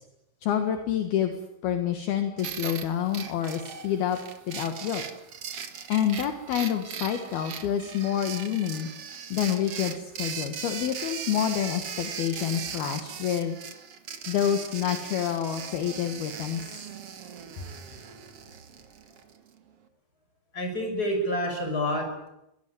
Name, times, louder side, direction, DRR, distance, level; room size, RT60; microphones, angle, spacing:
voice 1, 0.4-1.3 1.6-4.2 4.5-5.0 5.9-8.9 9.3-13.6 14.3-16.9 17.6-17.7, left 9 dB, 65° left, 6 dB, 3.3 m, -28 dB
sound 1, 2.4-19.4, right 7 dB, 50° right, 1.8 m, -39 dB
voice 2, 20.5-22.3, equal, 20° left, 4 dB, 6.3 m, -28 dB
23.5 x 18.0 x 9.5 m, 0.86 s
omnidirectional pair, 5.1 m